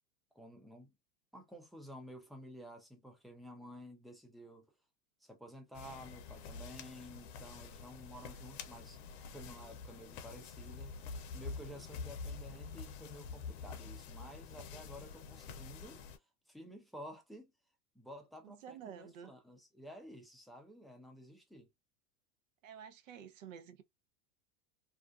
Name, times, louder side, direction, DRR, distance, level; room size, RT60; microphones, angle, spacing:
voice 1, 0.3-0.9 1.3-4.7 5.2-9.0 9.3-16.0 16.5-17.5 17.9-21.7, equal, ahead, 0.4 m, -52 dB
sound 1, 5.7-16.2, left 5 dB, 55° left, 0.7 m, -47 dB
voice 2, 18.4-19.3 22.6-23.8, right 8 dB, 85° right, 0.7 m, -50 dB
2.5 x 2.4 x 2.2 m
supercardioid pair, 120°, 38 cm